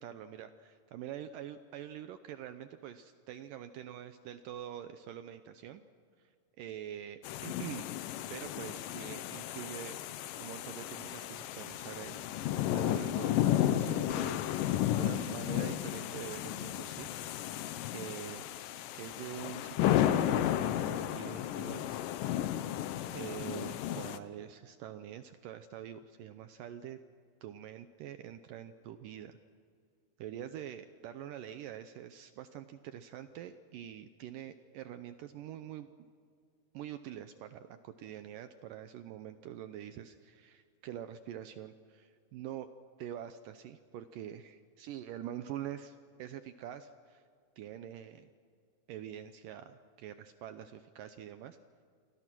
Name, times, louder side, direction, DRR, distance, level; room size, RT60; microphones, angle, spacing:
voice 1, 0.0-5.8 6.2-6.3 6.6-10.0 10.4-12.3 12.7-17.1 17.9-18.4 18.9-22.1 23.1-27.0 27.4-29.4 30.2-35.9 36.7-42.7 43.0-47.2 47.6-48.3 48.9-51.6, right 10 dB, 85° right, 10 dB, 1.9 m, -45 dB
sound 1, 7.2-24.2, left 12 dB, 75° left, 2.0 m, -33 dB
29.0 x 24.0 x 6.1 m, 2.2 s
omnidirectional pair, 4.8 m